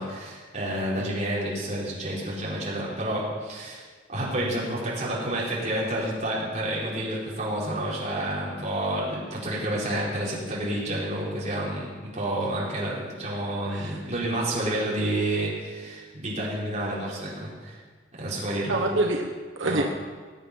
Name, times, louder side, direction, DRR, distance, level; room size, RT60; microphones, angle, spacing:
voice 1, 0.0-17.8 18.1-18.8 19.7-19.8, right 1 dB, 35° right, -6 dB, 4.6 m, -29 dB
voice 2, 18.7-19.8, right 2 dB, 90° right, 0 dB, 1.3 m, -27 dB
19.5 x 8.6 x 5.6 m, 1.5 s
head